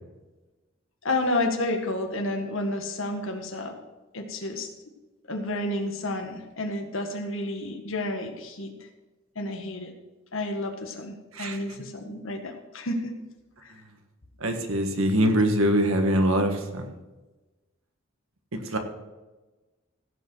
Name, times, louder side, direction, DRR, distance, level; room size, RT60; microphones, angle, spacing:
voice 1, 1.0-3.8 4.1-4.7 5.3-8.7 9.3-9.9 10.3-13.2 13.6-13.7 15.2-15.3, left 1 dB, 70° left, 5 dB, 1.6 m, -30 dB
voice 2, 14.4-16.9 18.5-18.8, equal, 85° right, 5 dB, 1.6 m, -23 dB
16.0 x 5.5 x 6.1 m, 1.1 s
head